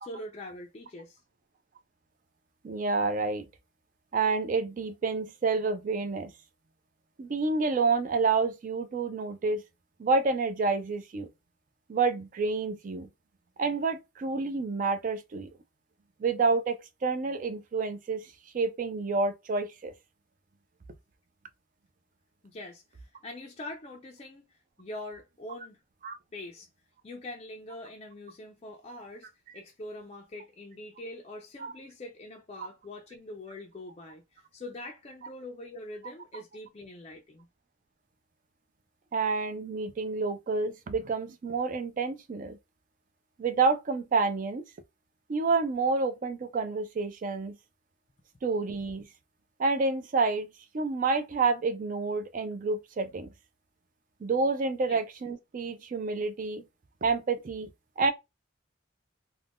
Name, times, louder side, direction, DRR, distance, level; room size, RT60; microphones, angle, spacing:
voice 1, 0.0-1.2 22.4-25.8 26.3-26.7 27.0-29.3 29.5-37.5 54.9-55.0, left 1 dB, 30° left, 0.4 m, -43 dB
voice 2, 2.6-3.5 4.1-6.3 7.2-9.6 10.0-11.3 11.9-13.1 13.6-15.5 16.2-18.2 18.5-19.9 26.0-26.2 31.6-31.7 39.1-42.6 43.4-44.6 45.3-47.6 48.4-49.1 49.6-50.5 50.7-53.3 54.2-56.6 57.0-57.7 58.0-58.1, right 4 dB, 40° right, 0.4 m, -28 dB
2.5 x 2.2 x 3.4 m
head